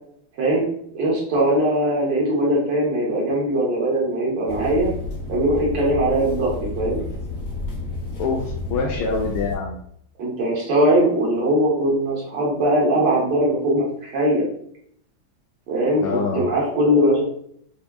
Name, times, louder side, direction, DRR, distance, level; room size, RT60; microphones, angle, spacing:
voice 1, 0.9-4.9 5.3-7.0 10.2-14.4 15.7-17.2, right 1 dB, 60° right, -4 dB, 1.6 m, -20 dB
sound 1, 4.5-9.6, left 3 dB, 50° left, 0.8 m, -31 dB
voice 2, 8.2-9.8 16.0-16.4, left 4 dB, 80° left, -2 dB, 1.4 m, -25 dB
4.6 x 2.7 x 2.3 m, 0.68 s
omnidirectional pair, 2.3 m